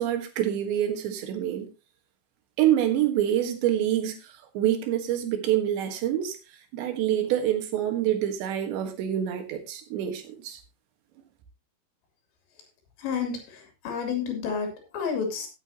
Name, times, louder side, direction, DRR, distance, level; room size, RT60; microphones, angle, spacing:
voice 1, 0.0-1.7 2.6-6.4 6.7-10.6, right 11 dB, 80° right, 3.7 m, -26 dB
voice 2, 13.0-15.5, left 6 dB, 80° left, 5.2 m, -31 dB
16.0 x 8.6 x 2.9 m
omnidirectional pair, 5.1 m